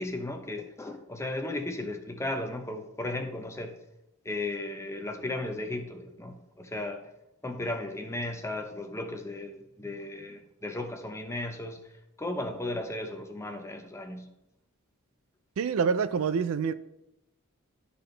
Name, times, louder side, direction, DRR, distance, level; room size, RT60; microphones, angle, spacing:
voice 1, 0.0-3.7 4.2-7.0 7.4-11.9 12.2-14.3, left 2 dB, 10° left, 0.7 m, -35 dB
voice 2, 15.6-16.7, right 6 dB, 65° right, 0.3 m, -26 dB
12.0 x 4.1 x 3.3 m
head